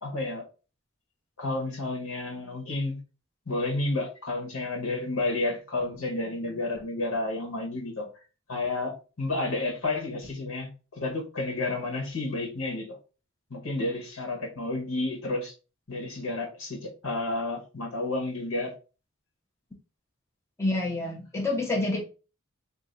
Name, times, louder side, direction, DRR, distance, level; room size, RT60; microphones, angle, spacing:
voice 1, 0.0-0.5 1.4-3.0 3.5-8.1 8.5-13.0 13.5-15.5 15.9-18.7, left 2 dB, 70° left, 1 dB, 1.3 m, -31 dB
voice 2, 20.6-22.0, left 2 dB, 15° left, -1 dB, 0.7 m, -28 dB
2.7 x 2.7 x 3.9 m, 0.33 s
head